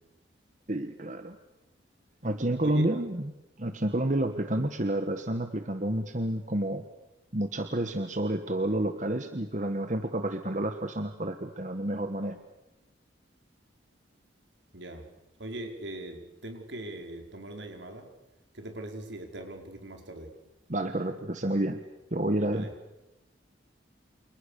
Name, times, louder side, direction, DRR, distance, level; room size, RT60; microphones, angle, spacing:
voice 1, 0.7-1.4 2.2-3.3 3.6-6.8 7.3-12.4 20.7-21.8 22.1-22.7, right 1 dB, 40° right, 7 dB, 1.4 m, -29 dB
voice 2, 15.4-18.1 18.5-20.3 22.5-22.7, right 1 dB, 75° right, 3 dB, 5.4 m, -40 dB
29.5 x 27.5 x 6.8 m, 0.97 s
head